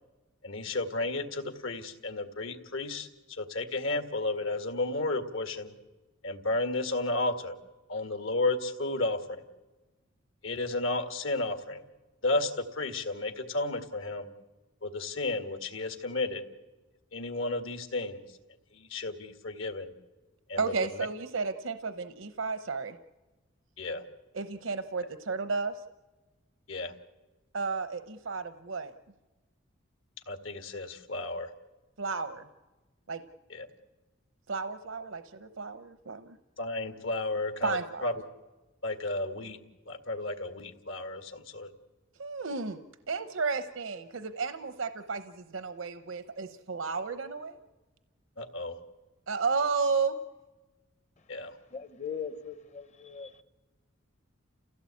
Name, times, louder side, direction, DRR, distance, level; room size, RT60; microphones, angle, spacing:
voice 1, 0.4-5.7 6.2-7.6 7.9-9.2 10.4-11.8 12.2-14.3 14.8-16.4 17.1-18.2 18.7-19.9 20.5-20.7 23.8-24.0 26.7-26.9 30.3-31.5 33.5-33.7 36.6-38.1 38.8-39.6 39.9-41.7 48.4-48.8 51.3-51.5, left 2 dB, 75° left, 7 dB, 2.0 m, -32 dB
voice 2, 20.6-23.0 24.3-25.7 27.5-28.9 32.0-32.5 33.1-33.2 34.5-36.4 37.6-38.1 42.2-42.8 43.1-47.6 49.3-50.2, right 4 dB, 75° right, 11 dB, 0.8 m, -32 dB
voice 3, 51.7-53.4, left 6 dB, 35° left, 14 dB, 0.8 m, -40 dB
29.5 x 16.5 x 8.5 m, 1.2 s
head